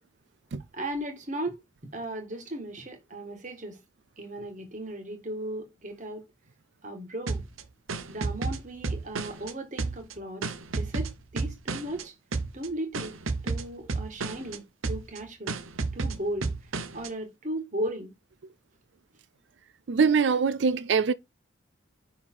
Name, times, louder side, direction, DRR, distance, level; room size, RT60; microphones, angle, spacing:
voice 1, 0.7-1.6 1.9-3.8 4.2-6.2 6.8-7.4 8.1-10.4 10.8-12.1 12.5-13.1 13.4-15.6 15.9-16.5 16.9-18.1, right 1 dB, 35° right, 1.6 m, -36 dB
sound 1, 7.3-9.5 9.8-12.0 12.3-12.7 12.9-14.6 14.8-15.2 15.5-17.1, right 3 dB, 85° right, 0.9 m, -32 dB
voice 2, 19.9-21.1, right 5 dB, 60° right, 0.4 m, -23 dB
5.8 x 4.0 x 4.5 m
head